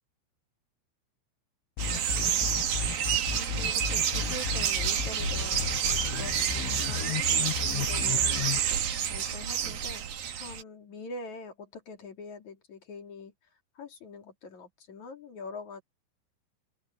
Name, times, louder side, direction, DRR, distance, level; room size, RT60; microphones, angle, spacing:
sound 1, 1.8-8.6, left 10 dB, 85° left, 4.0 m, -34 dB
voice 1, 1.8-2.6 3.3-8.5 9.0-10.1 10.4-13.3 13.7-15.8, left 3 dB, 40° left, 4.0 m, -44 dB
sound 2, 1.8-10.6, right 9 dB, 55° right, 3.3 m, -29 dB
omnidirectional pair, 5.6 m